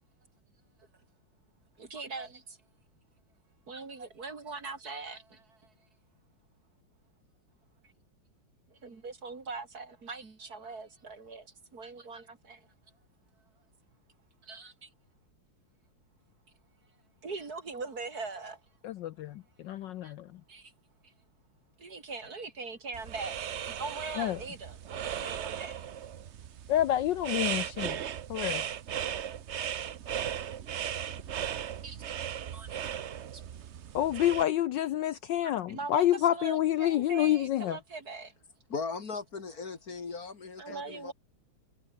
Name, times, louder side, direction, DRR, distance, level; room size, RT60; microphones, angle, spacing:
voice 1, 1.8-2.6 3.7-5.7 8.7-11.5 11.7-12.7 14.4-14.9 17.2-18.6 20.0-20.1 20.5-20.7 21.8-23.4 23.6-25.9 31.8-32.1 32.5-32.8 33.3-33.4 35.4-38.3 40.6-41.1, right 4 dB, 45° right, 3.2 m, -41 dB
voice 2, 18.8-19.3 19.6-20.2 24.2-24.4 26.7-28.0 28.3-28.6 33.9-37.8, left 12 dB, 70° left, 1.2 m, -28 dB
sound 1, 22.9-34.4, right 9 dB, 75° right, 0.6 m, -37 dB
voice 3, 38.7-41.1, left 4 dB, 45° left, 2.4 m, -38 dB
omnidirectional pair, 2.3 m